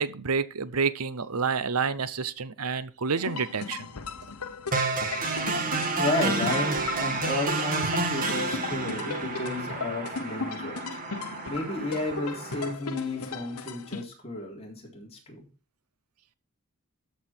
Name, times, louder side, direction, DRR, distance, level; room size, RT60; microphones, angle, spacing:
voice 1, 0.0-3.9, right 5 dB, 85° right, 0.9 m, -29 dB
sound 1, 3.2-14.0, left 4 dB, 90° left, 1.0 m, -37 dB
sound 2, 4.7-12.7, right 3 dB, 40° right, 1.9 m, -30 dB
voice 2, 6.0-11.0 11.5-15.4, left 2 dB, 30° left, 3.7 m, -32 dB
13.0 x 5.7 x 4.5 m
head